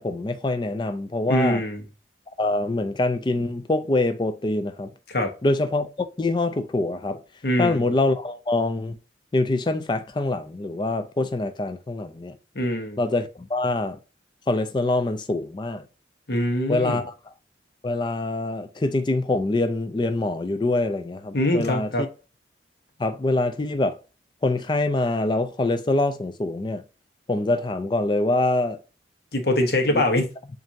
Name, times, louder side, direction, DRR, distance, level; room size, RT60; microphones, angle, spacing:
voice 1, 0.0-1.6 2.4-4.9 5.4-7.2 7.6-9.0 9.3-12.3 13.0-14.0 14.5-15.8 16.7-17.1 17.8-21.9 23.0-24.0 24.4-26.8 27.3-28.8 29.9-30.1, left 2 dB, 25° left, 0.4 m, -24 dB
voice 2, 1.3-1.8 5.1-5.3 7.4-7.9 12.5-13.0 16.3-17.0 21.3-22.1 29.3-30.3, left 1 dB, 55° left, 1.0 m, -23 dB
7.3 x 2.6 x 2.6 m
head